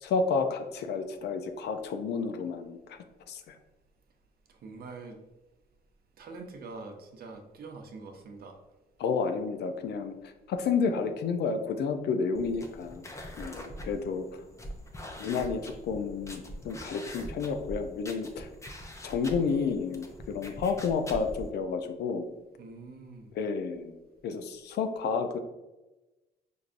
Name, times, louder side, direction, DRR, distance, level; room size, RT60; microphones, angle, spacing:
voice 1, 0.0-3.0 3.3-3.6 9.0-10.1 10.5-13.0 13.4-14.4 15.2-18.5 19.0-22.3 23.3-24.0 24.2-25.4, left 5 dB, 75° left, 7 dB, 0.4 m, -31 dB
voice 2, 4.6-5.2 6.2-8.6 22.6-23.3, right 3 dB, 60° right, 3 dB, 0.7 m, -44 dB
sound 1, 12.3-21.5, equal, 15° left, 0.5 m, -43 dB
4.6 x 2.6 x 2.5 m, 1.0 s
cardioid pair, 110°, 17 cm